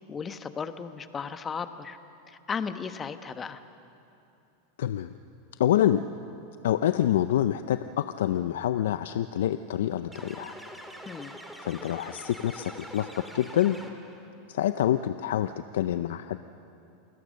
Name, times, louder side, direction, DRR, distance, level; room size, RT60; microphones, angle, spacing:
voice 1, 0.1-2.0 2.3-3.6 11.0-11.3, left 6 dB, 20° left, 10 dB, 1.1 m, -35 dB
voice 2, 4.8-5.1 5.6-6.0 6.6-10.5 11.6-13.8 14.5-16.4, left 11 dB, 85° left, 11 dB, 0.5 m, -26 dB
sound 1, 10.1-14.3, right 1 dB, 5° right, 2.2 m, -44 dB
28.0 x 17.0 x 6.5 m, 2.8 s
supercardioid pair, 125°, 0 cm